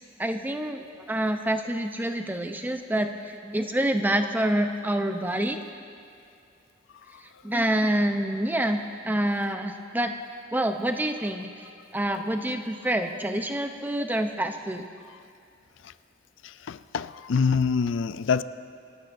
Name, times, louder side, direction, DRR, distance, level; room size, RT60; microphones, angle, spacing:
voice 1, 0.2-5.6 7.4-10.1 10.5-11.5 11.9-14.8, right 1 dB, 10° right, 0.6 m, -27 dB
voice 2, 16.4-18.4, left 5 dB, 80° left, 0.4 m, -25 dB
26.5 x 12.5 x 2.6 m
head